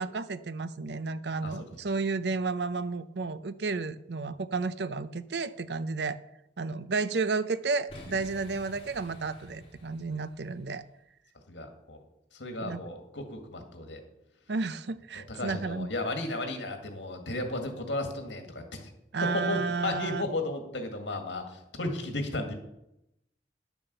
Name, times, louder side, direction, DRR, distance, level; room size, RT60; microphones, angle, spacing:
voice 1, 0.0-6.2 6.6-10.8 12.6-12.8 14.5-15.9 19.1-20.3, right 4 dB, 65° right, 14 dB, 0.6 m, -32 dB
voice 2, 1.4-1.8 11.5-12.0 12.3-14.0 15.3-18.9 19.2-22.5, left 2 dB, 85° left, 5 dB, 2.0 m, -34 dB
Boom, 7.9-10.9, left 1 dB, 30° left, 2.6 m, -50 dB
10.5 x 7.1 x 6.8 m, 0.86 s
head